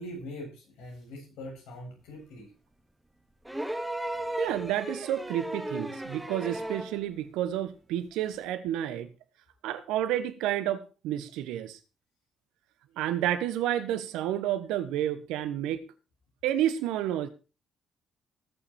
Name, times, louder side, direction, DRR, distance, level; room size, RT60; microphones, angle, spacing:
voice 1, 0.0-2.5 3.5-3.6 4.1-4.2, left 1 dB, 80° left, 7.5 m, -42 dB
sound 1, 3.5-7.0 8.3-8.4, right 1 dB, 10° right, 2.5 m, -35 dB
voice 2, 4.4-9.1 9.6-11.8 13.0-15.8 16.4-17.3, right 12 dB, 85° right, 1.2 m, -30 dB
19.5 x 6.9 x 4.7 m
supercardioid pair, 55°, 0 cm